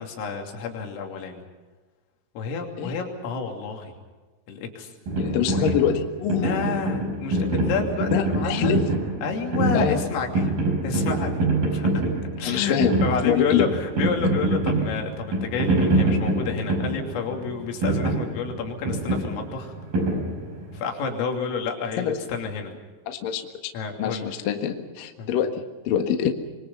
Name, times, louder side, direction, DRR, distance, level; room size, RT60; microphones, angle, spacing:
voice 1, 0.0-1.4 2.4-3.9 4.5-4.9 5.5-5.8 6.4-8.8 9.2-10.5 10.8-11.5 11.7-12.1 12.4-19.8 20.7-22.7 23.7-24.3 25.2-25.3, left 5 dB, 75° left, 3 dB, 5.4 m, -30 dB
sound 1, 5.1-20.8, right 2 dB, 45° right, 6.6 m, -25 dB
voice 2, 5.2-6.5 8.1-8.8 9.7-10.0 12.4-13.0 13.2-13.7 22.0-22.2 23.1-23.7 24.0-26.3, left 8 dB, 60° left, 5 dB, 2.6 m, -25 dB
26.0 x 24.0 x 5.5 m, 1.4 s
omnidirectional pair, 6.0 m